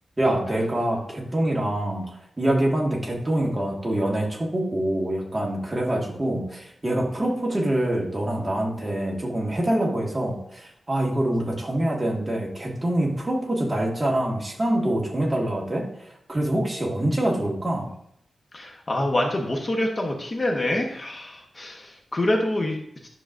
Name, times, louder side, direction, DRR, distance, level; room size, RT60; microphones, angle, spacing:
voice 1, 0.2-2.0 2.4-17.9, right 1 dB, 15° right, -2 dB, 1.6 m, -25 dB
voice 2, 18.5-23.1, left 1 dB, 30° left, 1 dB, 1.0 m, -26 dB
10.5 x 6.5 x 2.5 m, 0.71 s
wide cardioid pair, 165°, 0 cm